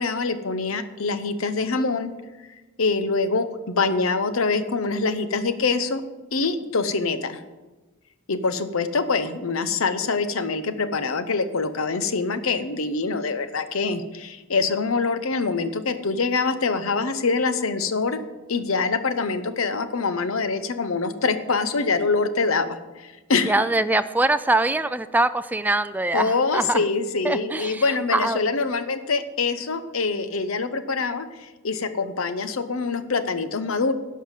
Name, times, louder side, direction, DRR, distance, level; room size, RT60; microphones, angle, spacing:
voice 1, 0.0-2.1 2.8-6.0 6.3-7.4 8.3-18.2 18.5-22.7 23.0-23.5 26.1-33.9, left 4 dB, 80° left, 10 dB, 0.8 m, -24 dB
voice 2, 23.5-26.8 27.2-27.8 28.1-28.4, right 2 dB, 10° right, 12 dB, 0.3 m, -23 dB
11.5 x 5.5 x 7.4 m, 1.2 s
head